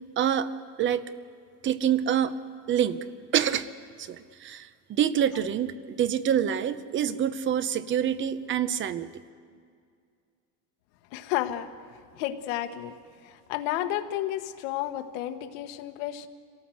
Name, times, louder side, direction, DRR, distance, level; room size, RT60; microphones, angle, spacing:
voice 1, 0.2-0.5 0.8-1.0 1.6-2.3 2.7-3.0 3.3-3.7 4.0-9.1, right 9 dB, 30° right, 14 dB, 0.8 m, -26 dB
voice 2, 11.1-11.7 12.2-13.0 13.2-16.3, left 13 dB, 85° left, 8 dB, 1.4 m, -31 dB
26.0 x 18.0 x 7.8 m, 2.2 s
cardioid pair, 165°, 40 cm